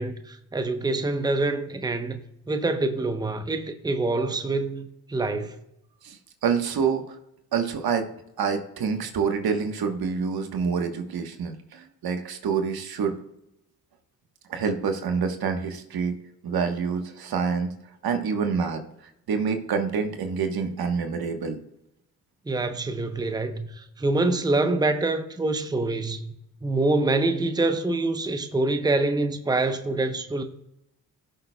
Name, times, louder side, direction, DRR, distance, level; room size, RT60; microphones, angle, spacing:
voice 1, 0.0-2.2 2.5-5.6 22.5-26.3 26.6-30.4, right 2 dB, 10° right, 0.8 m, -25 dB
voice 2, 6.4-7.1 7.5-8.1 8.4-13.2 14.5-16.2 16.4-17.7 18.0-18.8 19.3-21.6, right 6 dB, 70° right, 1.3 m, -27 dB
17.0 x 6.8 x 2.3 m
supercardioid pair, 60°, 39 cm